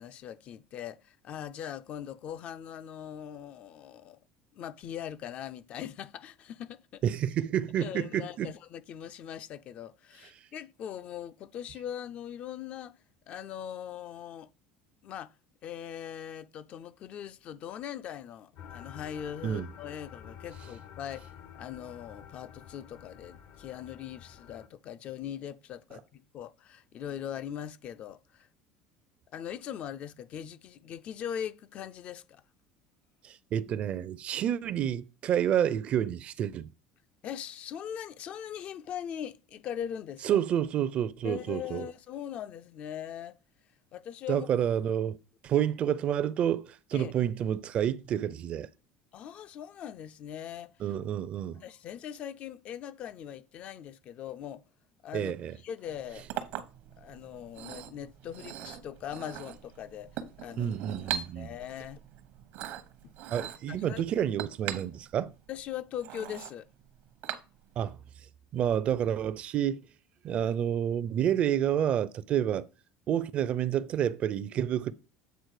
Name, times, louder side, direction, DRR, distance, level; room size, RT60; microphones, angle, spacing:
voice 1, 0.0-4.2 4.5-7.0 7.8-13.0 13.3-14.5 15.0-15.3 15.6-28.5 29.3-32.4 37.2-40.4 41.2-43.4 43.9-44.5 46.9-47.1 49.1-50.7 51.6-54.6 55.0-55.3 55.6-56.3 57.0-60.7 61.0-62.0 63.0-63.1 63.4-64.0 65.5-66.7, left 9 dB, 45° left, 0.4 m, -41 dB
voice 2, 7.0-8.5 19.4-19.7 33.2-36.7 40.2-41.9 44.3-45.2 45.4-48.7 50.8-51.6 55.1-55.5 60.6-61.5 63.3-65.3 67.8-68.0 68.5-69.8 70.2-72.7 73.1-74.9, right 10 dB, 45° right, 0.5 m, -29 dB
sound 1, 18.6-24.7, left 8 dB, 70° left, 0.8 m, -49 dB
Chink clink, 55.9-67.9, right 10 dB, 65° right, 0.8 m, -41 dB
8.1 x 3.9 x 4.8 m
supercardioid pair, 120°, 3 cm